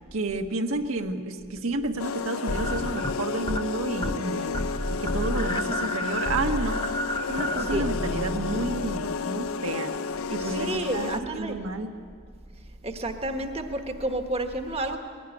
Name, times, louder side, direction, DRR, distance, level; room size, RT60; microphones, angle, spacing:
voice 1, 0.1-4.6 4.9-6.8 7.3-9.9 10.3-11.9, right 2 dB, 75° right, 3 dB, 1.5 m, -30 dB
sound 1, 2.0-11.2, left 5 dB, 75° left, 0.5 m, -32 dB
sound 2, 2.5-3.7 4.0-4.3 4.5-9.3, equal, 20° left, 0.8 m, -31 dB
voice 2, 10.4-11.7 12.8-15.0, right 1 dB, 30° right, 5 dB, 1.3 m, -30 dB
21.0 x 18.0 x 9.9 m, 2.1 s
head